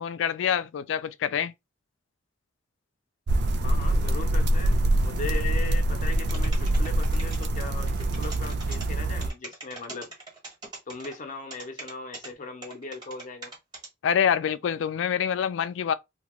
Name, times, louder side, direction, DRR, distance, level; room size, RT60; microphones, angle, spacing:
voice 1, 0.0-1.5 14.0-15.9, left 8 dB, 75° left, 0.3 m, -26 dB
sound 1, 3.3-9.3, right 1 dB, 65° right, 0.4 m, -25 dB
voice 2, 3.6-10.1 10.9-13.5, left 3 dB, 45° left, 0.7 m, -38 dB
sound 2, 6.3-7.5 7.9-8.9 9.2-11.1 11.5-12.3 12.6-13.9, right 2 dB, 25° right, 1.3 m, -41 dB
2.8 x 2.3 x 3.0 m
head